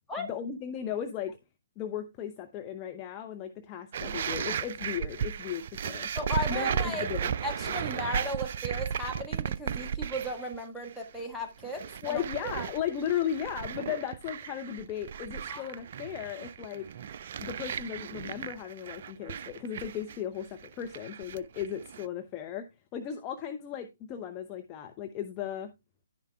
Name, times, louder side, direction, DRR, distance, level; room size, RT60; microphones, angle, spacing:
voice 1, 0.2-1.4 1.8-6.1 6.5-7.3 7.7-7.8 12.0-16.9 17.4-25.7, left 9 dB, 25° left, 0.7 m, -36 dB
sound 1, 3.9-10.6 10.8-11.2 11.6-22.1, right 8 dB, 45° right, 0.4 m, -35 dB
voice 2, 6.1-7.0 7.4-12.2 15.5-15.7, equal, 5° left, 1.5 m, -35 dB
11.0 x 10.0 x 2.3 m
figure-of-eight pair, 130°, 0 cm